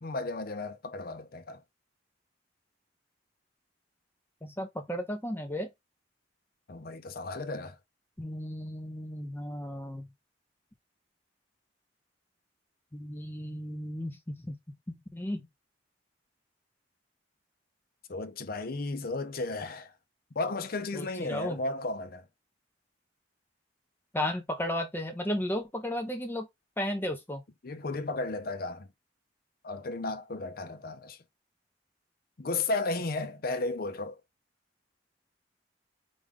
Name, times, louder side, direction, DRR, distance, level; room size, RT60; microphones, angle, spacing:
voice 1, 0.0-1.6 6.7-7.8 18.1-19.9 20.4-22.3 27.6-28.9 29.6-31.2 32.4-34.2, left 3 dB, 50° left, 0.6 m, -34 dB
voice 2, 4.4-5.7 8.2-10.1 12.9-14.6 14.9-15.4 20.9-21.6 24.1-26.5 26.8-27.4, left 1 dB, 10° left, 0.6 m, -34 dB
4.9 x 2.4 x 3.5 m
head